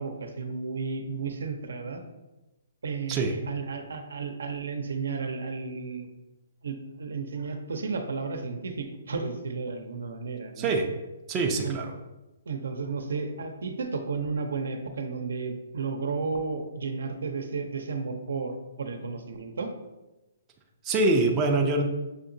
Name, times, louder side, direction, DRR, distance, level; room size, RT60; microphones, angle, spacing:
voice 1, 0.0-2.0 2.8-6.1 6.6-10.7 11.6-11.8 12.5-19.7, right 4 dB, 85° right, 5 dB, 0.7 m, -33 dB
voice 2, 11.3-11.9 20.8-21.9, right 2 dB, 15° right, 0 dB, 0.4 m, -24 dB
6.5 x 2.9 x 2.7 m, 1.0 s
hypercardioid pair, 165°, 0 cm